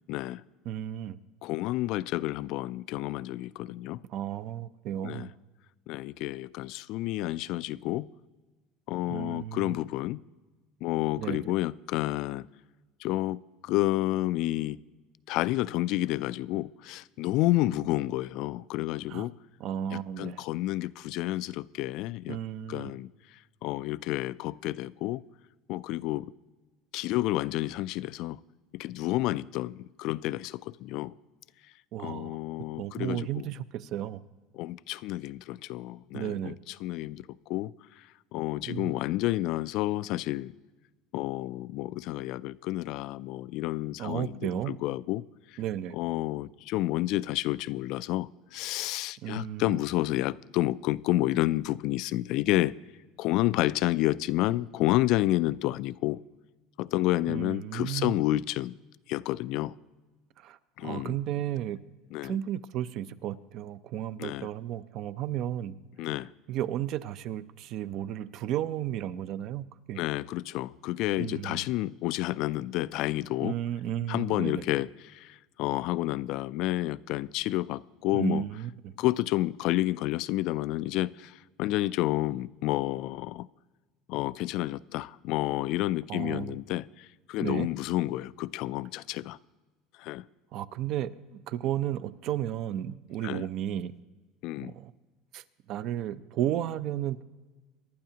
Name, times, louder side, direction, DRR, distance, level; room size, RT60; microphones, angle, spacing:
voice 1, 0.1-0.4 1.4-4.0 5.0-5.3 5.9-8.1 8.9-10.2 10.8-12.5 13.0-14.8 15.3-19.4 19.9-22.4 22.7-23.1 23.6-25.2 25.7-26.3 26.9-28.4 28.7-31.1 32.0-33.5 34.5-37.7 38.3-40.5 41.1-45.2 45.9-52.7 53.2-56.2 56.8-58.8 59.1-59.7 60.8-61.2 62.1-62.4 64.2-64.5 66.0-66.3 70.0-73.6 74.1-78.4 79.0-83.5 84.1-89.4 90.0-90.2 93.2-93.4 94.4-94.7, left 17 dB, 60° left, 0.3 m, -30 dB
voice 2, 0.7-1.2 4.1-5.3 9.1-9.7 11.2-11.5 19.1-19.3 19.6-20.4 22.3-22.9 31.9-32.4 32.8-34.2 36.1-36.6 38.6-38.9 44.0-44.8 45.6-46.0 49.2-49.8 57.3-58.2 60.4-61.8 62.2-65.8 66.5-70.0 71.2-71.6 73.4-74.6 78.1-78.9 86.1-86.6 87.4-87.7 90.5-93.9 94.6-94.9 95.3-97.2, right 11 dB, 50° right, 0.5 m, -33 dB
24.0 x 11.5 x 2.8 m
cardioid pair, 140°, 0 cm